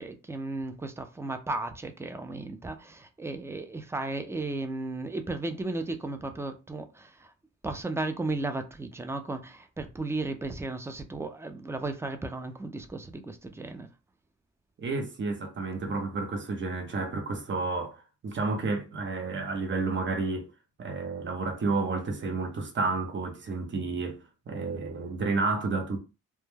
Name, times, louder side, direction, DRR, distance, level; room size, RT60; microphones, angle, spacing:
voice 1, 0.0-7.1 7.6-13.9, right 2 dB, 10° right, 0.3 m, -35 dB
voice 2, 14.8-20.5 20.8-26.0, right 3 dB, 35° right, 0.7 m, -31 dB
2.2 x 2.1 x 3.1 m
cardioid pair, 95°, 34 cm